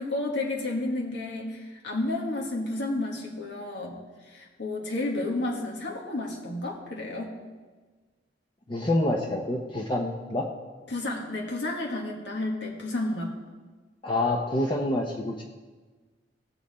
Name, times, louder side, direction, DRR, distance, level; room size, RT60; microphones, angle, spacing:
voice 1, 0.0-7.3 10.9-13.3, left 2 dB, 80° left, -2 dB, 1.7 m, -31 dB
voice 2, 8.7-10.5 14.0-15.5, left 1 dB, 30° left, -1 dB, 0.8 m, -27 dB
16.5 x 7.2 x 4.2 m, 1.4 s
head